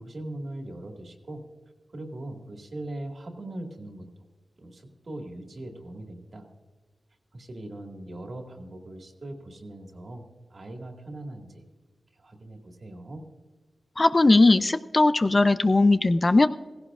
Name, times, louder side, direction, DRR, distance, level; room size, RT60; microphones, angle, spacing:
voice 1, 0.0-1.4 1.9-4.1 4.6-6.5 7.3-10.2 10.5-11.6 12.2-13.2, right 1 dB, 55° right, 2 dB, 2.0 m, -40 dB
voice 2, 14.0-16.5, left 2 dB, 35° left, 11 dB, 0.5 m, -19 dB
16.0 x 16.0 x 2.5 m, 1.4 s
cardioid pair, 65°, 0 cm